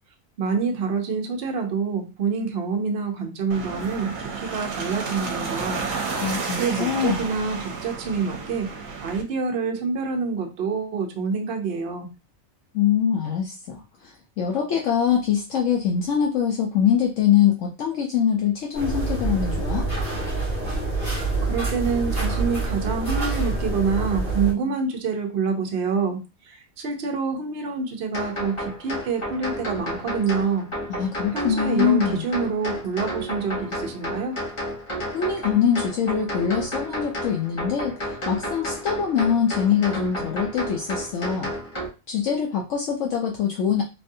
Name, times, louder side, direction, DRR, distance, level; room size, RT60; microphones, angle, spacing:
voice 1, 0.4-5.8 6.5-12.1 21.4-26.2 26.5-30.7 31.3-34.4, right 5 dB, 55° right, 3 dB, 0.8 m, -27 dB
sound 1, 3.5-9.2, right 4 dB, 75° right, 1.1 m, -31 dB
voice 2, 6.2-7.2 12.7-19.9 31.0-32.2 35.1-41.5 42.1-43.8, left 8 dB, 70° left, 0 dB, 0.9 m, -23 dB
sound 2, 18.7-24.5, right 3 dB, 45° left, 1.7 m, -26 dB
sound 3, 28.1-41.9, equal, 25° left, 0.9 m, -32 dB
3.2 x 2.5 x 2.6 m, 0.28 s
omnidirectional pair, 1.4 m